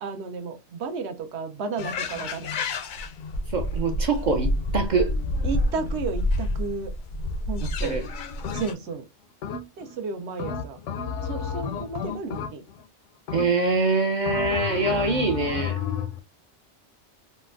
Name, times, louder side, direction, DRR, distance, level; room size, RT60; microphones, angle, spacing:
voice 1, 0.0-2.5 5.4-6.9 7.5-8.0 8.5-9.1 9.8-10.8 11.2-12.6, right 4 dB, 70° right, 0.9 m, -33 dB
sound 1, 1.8-8.7, left 1 dB, 60° left, 0.5 m, -28 dB
voice 2, 3.5-5.1 7.8-8.0 13.3-15.8, right 3 dB, 50° right, 0.5 m, -24 dB
sound 2, 8.4-9.0 9.4-10.0 10.4-12.9 13.3-13.8 14.3-16.2, left 6 dB, 85° left, 0.9 m, -32 dB
4.1 x 2.1 x 2.3 m
omnidirectional pair, 1.2 m